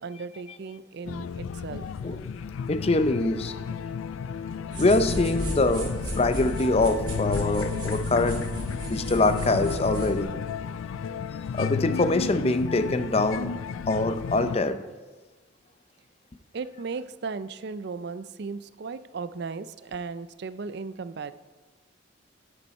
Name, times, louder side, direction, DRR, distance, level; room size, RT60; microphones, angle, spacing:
voice 1, 0.0-1.9 4.4-4.5 16.5-21.3, right 4 dB, 55° right, 14 dB, 0.4 m, -36 dB
sound 1, 1.1-14.6, left 6 dB, 85° left, 0.3 m, -33 dB
voice 2, 2.7-3.6 4.8-8.5 8.8-10.4 11.5-13.6 13.9-14.8, left 2 dB, 30° left, 11 dB, 0.5 m, -24 dB
sound 2, 4.7-10.2, equal, 25° right, 2.1 m, -34 dB
9.9 x 9.0 x 4.3 m, 1.2 s
head